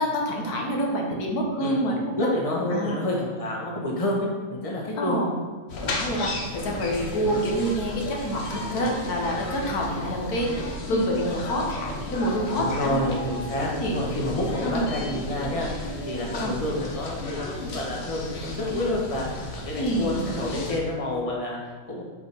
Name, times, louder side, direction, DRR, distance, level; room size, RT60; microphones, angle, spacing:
voice 1, 0.0-2.3 2.7-3.0 5.0-5.3 5.8-13.1 13.8-14.0 14.6-14.9 16.3-16.6 19.7-20.3, equal, 85° left, 0 dB, 1.6 m, -27 dB
voice 2, 1.6-5.2 7.2-7.3 9.8-9.9 12.5-22.0, left 1 dB, 25° left, -3 dB, 1.4 m, -29 dB
sound 1, 5.7-20.8, left 2 dB, 50° left, 1.1 m, -34 dB
5.0 x 5.0 x 5.6 m, 1.5 s
omnidirectional pair, 1.6 m